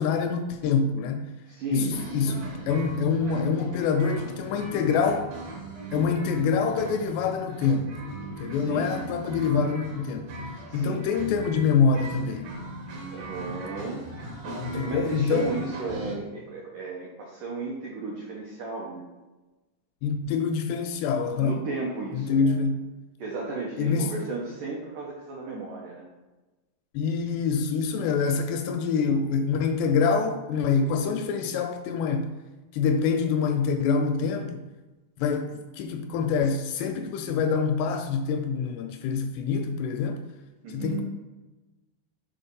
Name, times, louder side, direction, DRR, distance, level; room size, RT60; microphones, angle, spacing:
voice 1, 0.0-1.3 1.7-5.3 5.9-8.0 8.4-10.3 10.7-12.5 14.6-15.5 20.0-21.6 22.1-22.9 23.8-24.1 26.9-32.3 32.7-34.6 35.2-40.2 40.7-41.0, left 5 dB, 85° left, 2.4 m, -25 dB
voice 2, 1.5-2.4 8.6-8.9 10.7-11.3 13.1-14.0 14.7-19.0 21.4-22.6 23.2-26.1 40.6-41.0, right 3 dB, 80° right, 1.8 m, -34 dB
sound 1, 1.9-16.1, right 1 dB, 65° right, 1.7 m, -38 dB
7.7 x 4.2 x 5.3 m
omnidirectional pair, 5.2 m